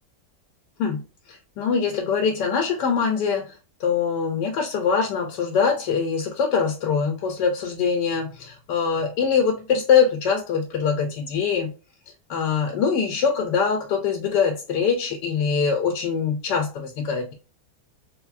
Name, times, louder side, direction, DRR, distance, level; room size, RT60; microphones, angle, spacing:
voice 1, 1.3-11.7 12.3-17.3, left 6 dB, 85° left, 1.2 m, -23 dB
3.4 x 3.2 x 2.4 m
omnidirectional pair, 1.8 m